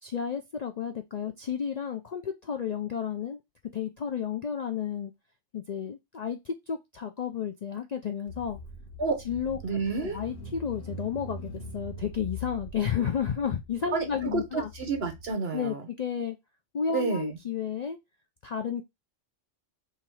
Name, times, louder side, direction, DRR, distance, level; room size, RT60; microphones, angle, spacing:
voice 1, 0.0-3.4 3.7-5.1 5.5-8.6 9.3-9.6 10.0-14.7 15.5-16.4 16.7-18.0 18.4-18.8, left 7 dB, 55° left, 0.4 m, -32 dB
Car / Engine, 8.3-15.3, equal, 75° left, 1.7 m, -42 dB
voice 2, 9.6-10.2 13.9-15.9 16.9-17.4, right 4 dB, 55° right, 1.2 m, -30 dB
3.6 x 3.2 x 4.4 m
omnidirectional pair, 1.2 m